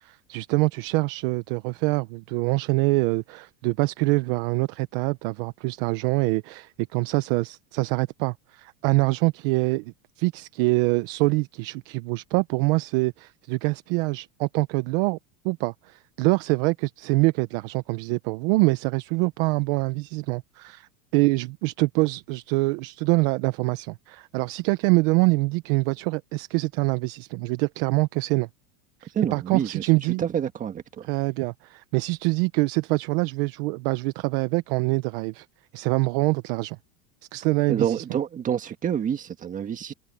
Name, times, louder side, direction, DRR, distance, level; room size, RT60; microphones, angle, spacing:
voice 1, 0.0-15.2 15.4-28.5 29.0-30.2 31.1-35.5 35.7-36.8 37.3-38.0, right 23 dB, 45° right, 0.7 m, -25 dB
voice 2, 29.1-29.9 30.2-31.1 37.7-39.9, right 8 dB, 20° right, 1.6 m, -27 dB
supercardioid pair, 165°, 40 cm